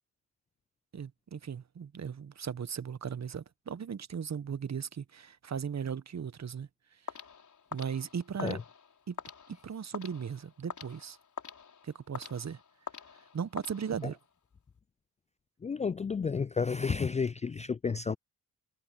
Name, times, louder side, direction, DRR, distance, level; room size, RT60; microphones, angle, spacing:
voice 1, 0.9-7.1 7.7-8.6 9.1-9.2 9.6-11.2 11.8-12.6 13.3-14.2, right 7 dB, 45° right, 1.6 m, -37 dB
sound 1, 7.1-14.3, left 6 dB, 50° left, 4.7 m, -46 dB
voice 2, 15.6-18.2, left 5 dB, 20° left, 0.4 m, -31 dB
hypercardioid pair, 40°, 39 cm